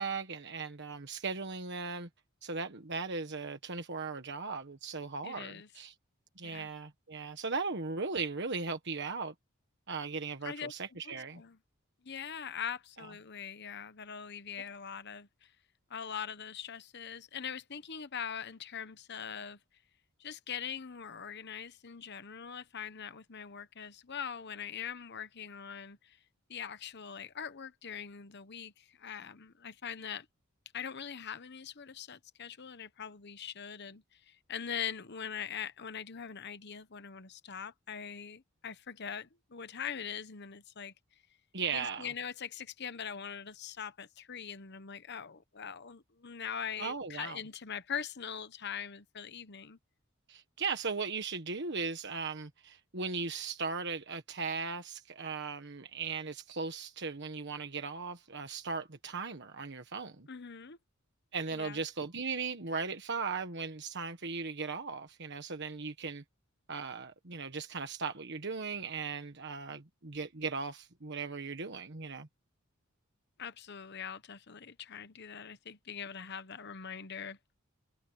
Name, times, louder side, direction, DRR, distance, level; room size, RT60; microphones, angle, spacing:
voice 1, 0.0-2.1 2.4-5.9 6.4-9.3 9.9-11.4 41.5-42.1 46.8-47.4 50.3-60.3 61.3-66.2 66.7-72.3, right 4 dB, 55° right, 1.4 m, -37 dB
voice 2, 5.2-5.7 6.4-6.7 10.4-10.7 11.0-11.6 12.0-15.5 15.9-19.6 20.2-26.2 26.5-30.3 30.7-40.9 41.7-49.8 60.3-60.8 61.5-61.8 73.4-77.4, left 7 dB, 50° left, 1.0 m, -42 dB
head